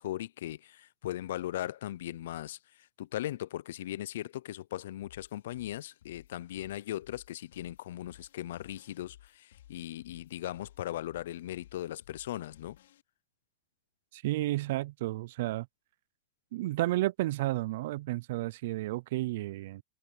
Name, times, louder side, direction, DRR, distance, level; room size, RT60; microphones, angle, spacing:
voice 1, 0.0-12.8, left 13 dB, 65° left, 0.4 m, -38 dB
sound 1, 5.0-13.0, left 13 dB, 85° left, 5.0 m, -58 dB
voice 2, 14.1-15.7 16.5-19.8, right 17 dB, 55° right, 0.3 m, -32 dB
supercardioid pair, 170°, 0 cm